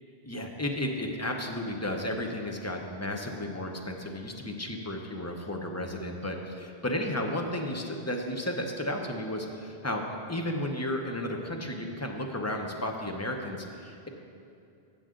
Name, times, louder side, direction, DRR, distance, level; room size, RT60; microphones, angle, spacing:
voice 1, 0.3-10.0 10.3-14.1, left 1 dB, 15° left, 2 dB, 0.8 m, -33 dB
15.5 x 6.9 x 3.8 m, 2.5 s
omnidirectional pair, 1.1 m